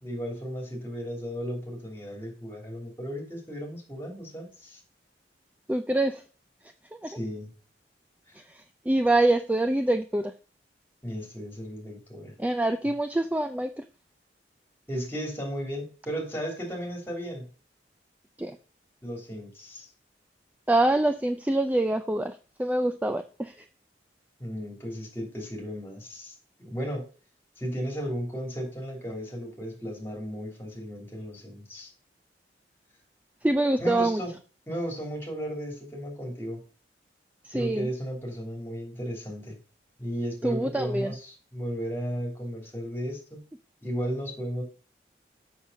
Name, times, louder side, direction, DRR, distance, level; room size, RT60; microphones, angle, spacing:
voice 1, 0.0-4.8 7.0-7.5 8.3-8.4 11.0-12.3 14.9-17.4 19.0-19.9 24.4-26.3 26.6-27.0 27.6-31.9 33.8-34.3 34.7-36.6 37.5-39.6 40.0-43.4 43.8-44.6, equal, 15° left, 1 dB, 3.0 m, -35 dB
voice 2, 5.7-6.2 6.9-7.2 8.3-10.3 12.4-13.9 18.4-18.6 20.7-23.7 33.4-34.2 37.4-37.9 40.4-41.1, right 1 dB, 10° right, 8 dB, 0.3 m, -25 dB
7.2 x 6.3 x 5.5 m, 0.37 s
head